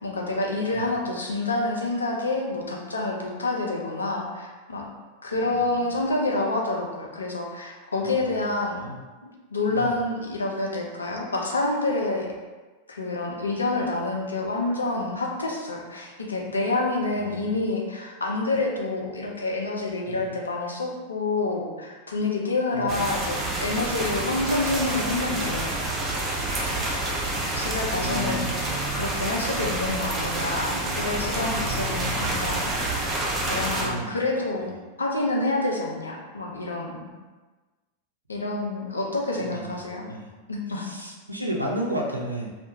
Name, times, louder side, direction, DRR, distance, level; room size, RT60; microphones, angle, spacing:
voice 1, 0.0-4.9 5.2-8.8 9.2-12.3 12.9-25.8 26.6-26.9 27.2-28.5 28.9-32.8 33.5-37.1 38.3-40.0 40.5-40.9, left 2 dB, 75° left, -1 dB, 0.4 m, -28 dB
voice 2, 5.4-6.0 8.0-8.5 8.8-9.0 9.7-10.0 17.1-17.6 20.1-20.3 22.7-23.1 27.9-28.5 32.0-32.5 33.8-34.2 34.6-34.7 39.4-40.3 40.7-42.5, equal, 85° right, 0 dB, 0.3 m, -34 dB
sound 1, 22.9-33.9, right 2 dB, 25° right, 0.5 m, -28 dB
2.2 x 2.1 x 2.8 m, 1.3 s
figure-of-eight pair, 90°, 0 cm